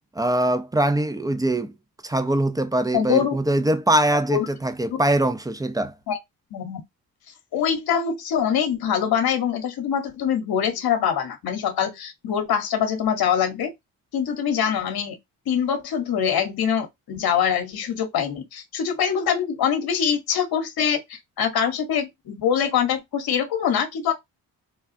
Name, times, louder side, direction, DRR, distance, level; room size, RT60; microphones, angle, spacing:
voice 1, 0.2-1.7 2.0-5.9, right 1 dB, 10° right, 0.4 m, -22 dB
voice 2, 2.9-3.4 4.3-4.5 6.1-6.2 6.5-6.8 7.5-13.7 14.1-15.2 15.5-24.1, left 8 dB, 65° left, 0.9 m, -24 dB
3.4 x 2.3 x 2.5 m
cardioid pair, 60°, 41 cm